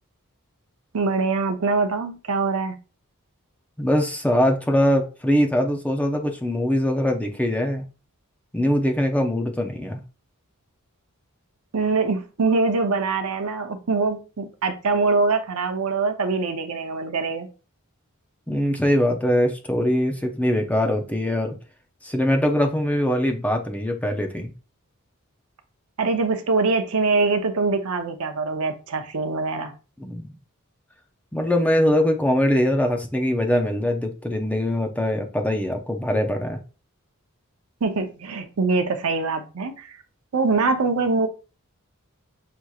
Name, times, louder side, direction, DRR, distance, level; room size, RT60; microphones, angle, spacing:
voice 1, 0.9-2.8 11.7-17.5 26.0-29.7 37.8-40.0 40.3-41.3, right 3 dB, 75° right, 6 dB, 0.7 m, -23 dB
voice 2, 3.8-7.8 8.5-10.0 18.5-21.5 22.0-24.5 30.0-30.3 31.3-36.6, equal, 5° left, 3 dB, 0.5 m, -22 dB
6.1 x 2.8 x 2.3 m, 0.34 s
head